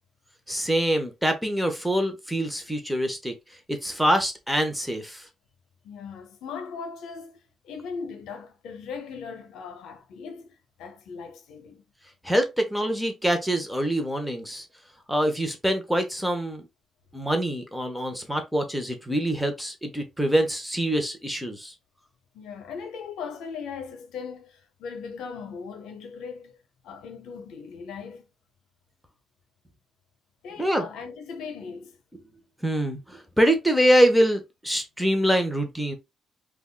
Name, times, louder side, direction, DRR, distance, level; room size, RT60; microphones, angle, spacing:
voice 1, 0.5-3.3 3.7-5.3 12.2-14.7 15.1-16.6 17.1-21.7 30.6-30.9 32.6-36.0, equal, ahead, 0.7 m, -24 dB
voice 2, 5.8-11.8 22.3-26.6 26.8-28.3 30.4-32.0, left 5 dB, 85° left, 0.6 m, -39 dB
3.4 x 2.3 x 2.2 m
cardioid pair, 90°, 0 cm